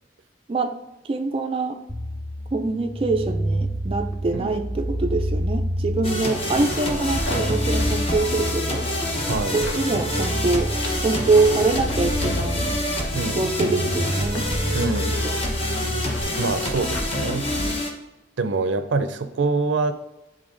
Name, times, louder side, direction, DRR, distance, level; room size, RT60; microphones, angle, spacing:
voice 1, 1.1-1.8 2.5-8.8 9.5-10.7 11.0-12.7 13.3-14.5 15.2-15.4, right 3 dB, 30° right, 4 dB, 0.3 m, -24 dB
sound 1, 1.9-16.2, equal, ahead, 1.4 m, -29 dB
sound 2, 6.0-17.9, left 1 dB, 30° left, 0.9 m, -27 dB
sound 3, 6.3-17.8, left 2 dB, 80° left, 0.9 m, -40 dB
voice 2, 9.3-9.6 13.1-13.8 14.7-15.2 16.4-17.5 18.4-19.9, right 3 dB, 85° right, 10 dB, 0.5 m, -25 dB
9.6 x 3.8 x 2.5 m, 0.99 s
head